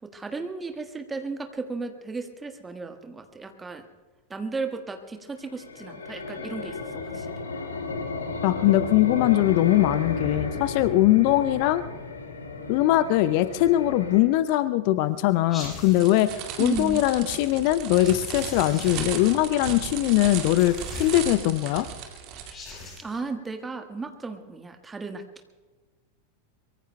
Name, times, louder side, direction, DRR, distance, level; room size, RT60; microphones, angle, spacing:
voice 1, 0.0-3.9 4.3-7.3 16.6-17.0 23.0-25.2, right 4 dB, 15° right, 6 dB, 1.4 m, -34 dB
sound 1, 5.4-14.2, left 3 dB, 70° left, 1.8 m, -33 dB
voice 2, 8.4-11.8 12.7-21.9, left 15 dB, 45° left, 14 dB, 0.5 m, -21 dB
sound 2, 15.5-16.3 17.9-19.3 20.5-21.6 22.4-23.2, left 3 dB, 20° left, 5.6 m, -41 dB
Queneau plastique, 15.9-22.5, right 8 dB, 40° right, 2.0 m, -36 dB
23.5 x 23.0 x 2.2 m, 1.4 s
figure-of-eight pair, 90°, 0 cm